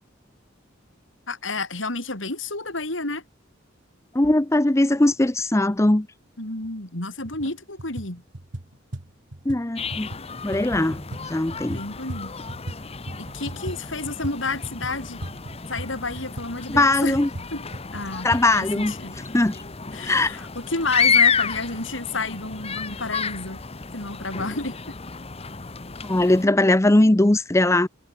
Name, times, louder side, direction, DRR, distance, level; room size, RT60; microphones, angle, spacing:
voice 1, 1.3-3.2 6.4-8.2 11.7-12.3 13.2-15.2 15.7-17.2 17.5-17.7 17.9-18.3 18.6-19.1 19.9-23.6 23.9-25.0, left 3 dB, 75° left, 6.2 m, -30 dB
voice 2, 4.1-6.1 9.5-10.1 10.4-11.8 16.7-17.3 18.2-18.9 19.3-19.6 20.0-20.4 26.0-27.9, left 1 dB, 15° left, 0.6 m, -20 dB
sound 1, 6.6-6.7 7.2-7.5 7.8-12.8 13.1-18.4, right 1 dB, 65° right, 1.7 m, -37 dB
sound 2, 9.8-26.5, left 5 dB, 30° left, 1.2 m, -30 dB
head